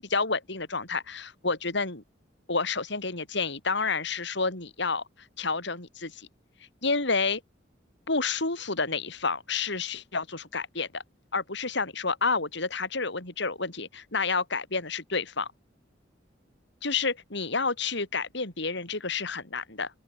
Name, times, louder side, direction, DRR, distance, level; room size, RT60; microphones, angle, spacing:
voice 1, 0.0-2.0 2.5-5.0 5.4-6.3 6.8-7.4 8.1-11.0 11.3-15.5 16.8-19.9, left 4 dB, 65° left, 4.9 m, -29 dB
open air
head